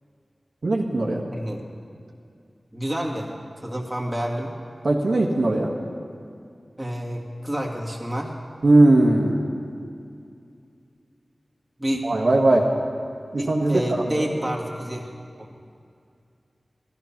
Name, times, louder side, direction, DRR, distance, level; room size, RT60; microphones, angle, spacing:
voice 1, 0.6-1.2 4.8-5.7 8.6-9.6 12.0-12.7 13.3-14.3, right 2 dB, 75° right, -2 dB, 1.6 m, -19 dB
voice 2, 2.7-3.3 3.6-4.5 6.8-8.3 11.8-12.0 13.4-15.1, equal, 15° right, -2 dB, 2.2 m, -28 dB
14.0 x 14.0 x 6.0 m, 2.4 s
wide cardioid pair, 60°, 0 cm